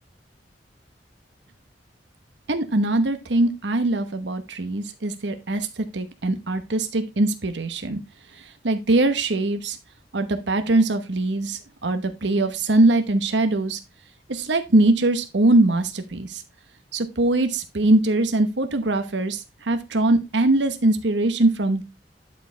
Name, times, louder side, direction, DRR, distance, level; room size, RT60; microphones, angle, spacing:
voice 1, 2.5-8.0 8.4-9.8 10.1-13.8 14.3-16.4 16.9-21.8, right 2 dB, 75° right, 8 dB, 1.0 m, -22 dB
11.0 x 4.6 x 3.3 m, 0.24 s
head